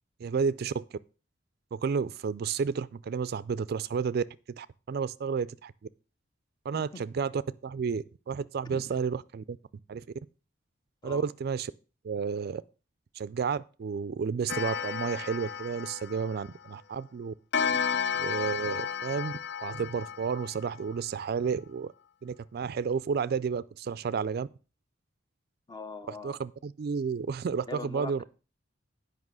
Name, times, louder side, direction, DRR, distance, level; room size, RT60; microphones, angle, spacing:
voice 1, 0.2-1.0 1.7-5.7 6.6-9.6 9.9-10.0 11.0-11.7 12.0-12.6 13.1-17.3 18.2-21.9 22.2-24.5 26.2-28.2, right 6 dB, 55° right, 0.3 m, -31 dB
Clock, 14.5-16.7 17.5-20.9, left 7 dB, 60° left, 0.5 m, -33 dB
voice 2, 25.7-26.4 27.6-28.2, left 3 dB, 20° left, 0.8 m, -41 dB
9.6 x 5.4 x 6.2 m
head